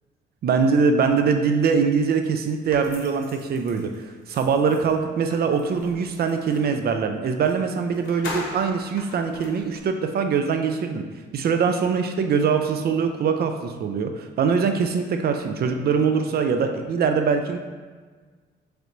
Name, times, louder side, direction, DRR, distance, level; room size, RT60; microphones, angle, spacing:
voice 1, 0.4-3.9 4.3-11.0 11.3-17.6, right 5 dB, 50° right, 6 dB, 0.4 m, -22 dB
sound 1, 2.7-6.7 7.4-7.6 7.8-9.9, left 2 dB, 75° left, 0.7 m, -40 dB
3.7 x 3.3 x 3.0 m, 1.4 s
cardioid pair, 90°, 20 cm